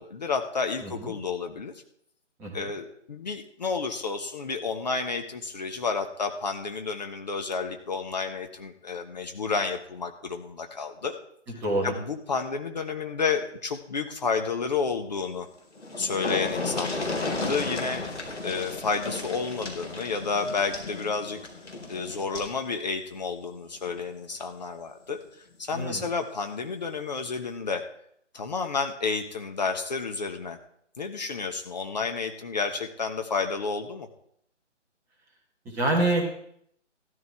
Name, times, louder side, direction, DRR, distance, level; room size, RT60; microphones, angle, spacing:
voice 1, 0.0-1.8 2.5-11.1 11.8-15.5 16.0-21.4 21.9-25.2 25.6-27.8 28.3-30.6 31.0-34.1, left 4 dB, 35° left, 5 dB, 1.0 m, -31 dB
voice 2, 0.8-1.1 2.4-2.7 11.5-11.9 25.7-26.1 35.6-36.4, right 2 dB, 5° right, -2 dB, 1.3 m, -27 dB
sound 1, 15.4-15.5 15.7-22.6 23.9-24.0 24.4-24.5, left 2 dB, 70° left, 4.5 m, -34 dB
16.0 x 13.0 x 3.4 m, 0.70 s
figure-of-eight pair, 145°, 37 cm